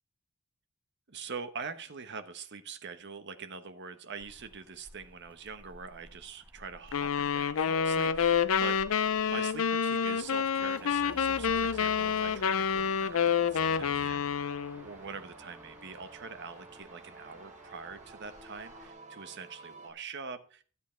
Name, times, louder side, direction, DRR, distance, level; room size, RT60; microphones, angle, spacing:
voice 1, 1.1-8.8 9.3-20.6, right 5 dB, 55° right, 9 dB, 1.1 m, -44 dB
Motor vehicle (road), 4.2-18.9, right 1 dB, 10° right, 1.0 m, -54 dB
sound 1, 6.9-14.9, left 7 dB, 75° left, 0.5 m, -28 dB
sound 2, 11.9-19.9, right 2 dB, 35° right, 2.0 m, -52 dB
12.5 x 8.2 x 4.5 m, 0.40 s
head